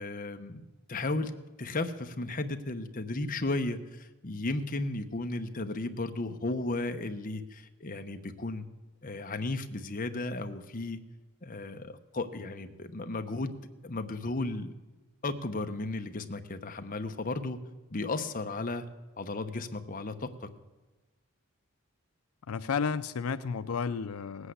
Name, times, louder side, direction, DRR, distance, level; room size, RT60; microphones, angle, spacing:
voice 1, 0.0-1.3 1.6-8.6 9.0-11.0 11.4-13.5 13.8-14.7 15.2-17.6 17.9-18.8 19.2-20.3, left 2 dB, 40° left, 7 dB, 1.0 m, -34 dB
voice 2, 22.5-24.5, left 5 dB, 85° left, 12 dB, 0.5 m, -32 dB
18.5 x 8.2 x 8.1 m, 1.2 s
head